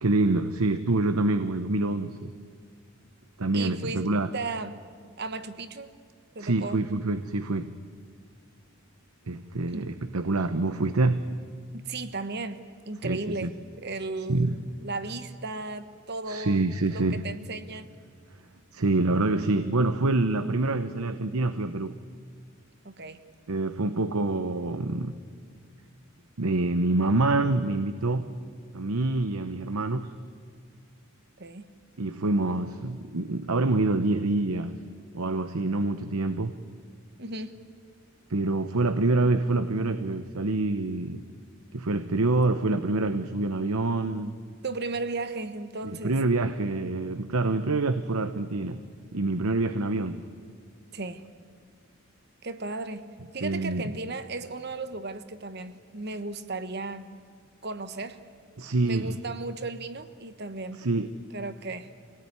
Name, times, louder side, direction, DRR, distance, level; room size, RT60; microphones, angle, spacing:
voice 1, 0.0-2.3 3.4-4.3 6.4-7.7 9.3-11.3 13.0-13.5 14.3-14.6 16.3-17.3 18.7-22.0 23.5-25.1 26.4-28.4 28.7-30.1 32.0-34.8 35.1-36.6 38.3-41.2 41.7-44.3 45.8-48.8 49.1-50.3 53.4-53.9 58.6-59.2 60.7-61.1, right 2 dB, 85° right, 10 dB, 0.9 m, -26 dB
voice 2, 3.5-4.1 4.3-4.7 5.2-5.9 6.3-6.8 9.7-9.9 11.7-17.9 22.8-23.2 31.4-31.6 37.2-37.5 44.6-46.2 50.9-51.2 52.4-53.1 53.3-57.1 57.6-58.2 58.8-60.8 61.3-61.9, right 3 dB, 50° right, 10 dB, 1.3 m, -35 dB
26.5 x 18.0 x 9.7 m, 2.1 s
head